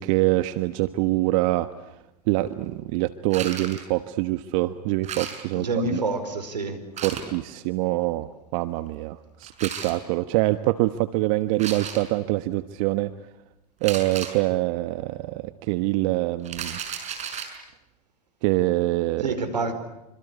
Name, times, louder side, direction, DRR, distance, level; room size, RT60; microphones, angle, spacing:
voice 1, 0.0-1.7 2.3-5.7 5.9-6.0 7.0-13.1 13.8-16.8 18.4-19.4, right 18 dB, 55° right, 11 dB, 1.3 m, -25 dB
sound 1, 3.3-3.9 5.0-5.7 7.0-7.3 9.4-10.0 11.5-12.2 13.8-14.4 16.4-17.6, right 7 dB, 35° right, 6.5 m, -34 dB
voice 2, 5.5-6.8 19.2-19.7, right 2 dB, 90° right, 10 dB, 4.9 m, -27 dB
27.5 x 26.0 x 8.3 m, 0.91 s
hypercardioid pair, 95°, 21 cm